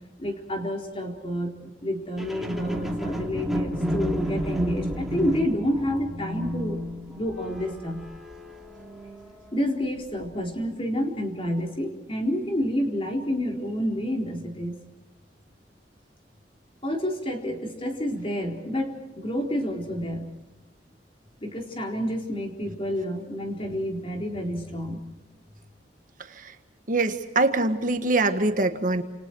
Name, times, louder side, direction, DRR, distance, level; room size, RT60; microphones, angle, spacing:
voice 1, 0.2-6.8 7.1-8.0 9.5-14.7 16.8-20.3 21.4-25.0, equal, 30° left, 2 dB, 4.2 m, -29 dB
sound 1, 2.2-9.6 10.2-10.3, equal, ahead, 2.7 m, -32 dB
voice 2, 26.9-29.0, right 2 dB, 50° right, 7 dB, 1.7 m, -23 dB
29.5 x 28.5 x 4.7 m, 1.1 s
head